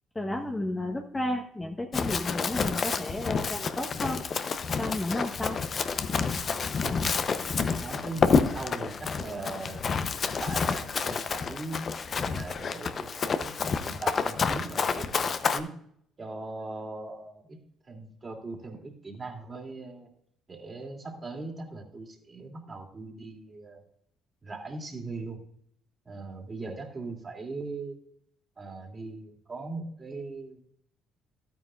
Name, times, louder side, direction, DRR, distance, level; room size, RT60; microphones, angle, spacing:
voice 1, 0.1-4.2 4.8-5.6, left 1 dB, 20° left, 2 dB, 1.2 m, -32 dB
Run, 1.9-15.6, left 5 dB, 45° left, 0.8 m, -29 dB
voice 2, 6.8-7.2 7.8-9.8 10.2-11.8 12.2-13.5 13.8-15.8 16.2-17.6 17.9-20.1 20.5-23.8 24.4-25.4 26.0-28.0 28.6-30.6, right 3 dB, 35° right, 0 dB, 2.8 m, -40 dB
12.5 x 9.3 x 2.5 m, 0.67 s
hypercardioid pair, 55°, 0 cm